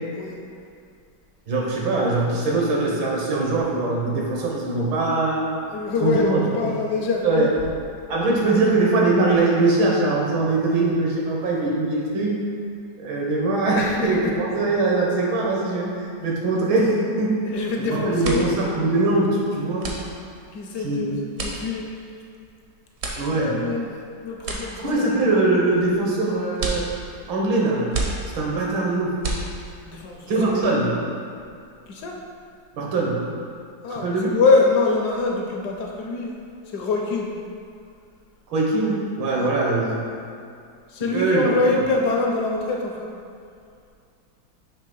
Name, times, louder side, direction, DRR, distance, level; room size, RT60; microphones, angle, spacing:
voice 1, 1.5-5.4 6.0-6.4 7.2-7.5 8.1-12.4 13.0-17.5 17.8-19.9 20.8-21.2 23.2-23.6 24.8-26.9 27.3-27.9 28.3-29.2 30.2-31.0 32.8-33.2 33.9-34.3 38.5-40.1 41.0-41.5, right 2 dB, 80° right, -3 dB, 1.8 m, -22 dB
voice 2, 5.7-7.5 13.7-14.4 17.4-18.7 20.5-21.9 23.3-23.9 24.2-25.1 29.8-30.8 31.9-32.2 33.8-36.3 36.7-37.3 39.3-39.5 40.9-43.1, left 3 dB, 70° left, 0 dB, 1.0 m, -24 dB
sound 1, 17.5-17.8 18.0-30.0, right 3 dB, 60° right, 0.8 m, -33 dB
5.5 x 3.2 x 5.3 m, 2.4 s
omnidirectional pair, 2.1 m